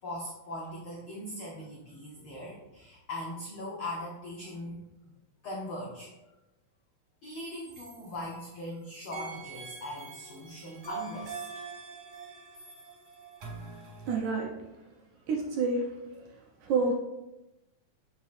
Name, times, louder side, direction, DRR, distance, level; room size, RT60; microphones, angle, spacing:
voice 1, 0.0-4.8 5.4-6.1 7.2-11.5, left 1 dB, 75° left, -3 dB, 1.2 m, -40 dB
sound 1, 7.3-8.7 9.1-14.2, right 5 dB, 55° right, 2.4 m, -44 dB
voice 2, 14.1-14.5 15.3-15.9 16.1-16.2 16.6-16.9, right 4 dB, 75° right, 0 dB, 1.9 m, -28 dB
7.2 x 5.8 x 2.5 m, 0.98 s
omnidirectional pair, 3.7 m